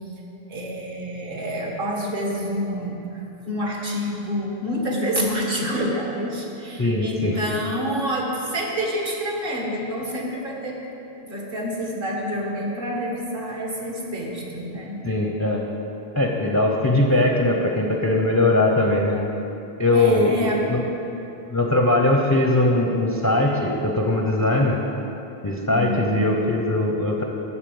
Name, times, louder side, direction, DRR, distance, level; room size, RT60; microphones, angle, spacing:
voice 1, 0.5-10.8 11.2-15.3 19.9-20.6 25.7-26.3, equal, 60° right, -1 dB, 1.7 m, -28 dB
voice 2, 6.8-7.4 15.0-15.6 16.1-19.2 19.8-20.3 20.7-20.8 21.5-24.8 25.4-27.2, left 2 dB, 20° left, 0 dB, 0.6 m, -20 dB
11.5 x 4.2 x 7.8 m, 2.9 s
omnidirectional pair, 1.1 m